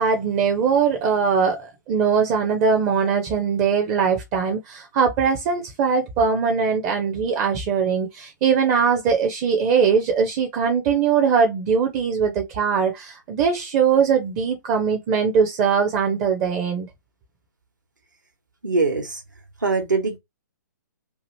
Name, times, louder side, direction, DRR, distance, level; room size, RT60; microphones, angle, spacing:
voice 1, 0.0-16.9, right 6 dB, 25° right, 0.5 m, -21 dB
voice 2, 18.6-19.2 19.6-20.2, right 3 dB, 75° right, 1.1 m, -22 dB
2.8 x 2.5 x 2.9 m
figure-of-eight pair, 125°, 10 cm